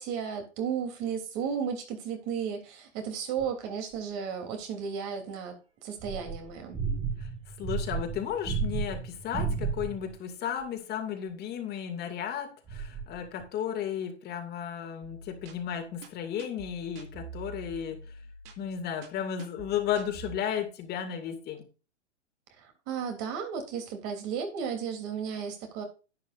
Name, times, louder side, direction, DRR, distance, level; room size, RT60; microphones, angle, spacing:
voice 1, 0.0-5.6 5.8-6.8 22.6-25.8, right 7 dB, 40° right, 3.4 m, -34 dB
sound 1, 3.4-3.5 6.0-10.2 12.7-13.4, right 5 dB, 15° right, 2.1 m, -33 dB
voice 2, 7.6-18.0 18.6-21.6, left 9 dB, 30° left, 2.5 m, -34 dB
sound 2, 15.0-20.4, right 4 dB, 55° right, 2.6 m, -47 dB
11.5 x 9.7 x 2.6 m
hypercardioid pair, 130°, 35 cm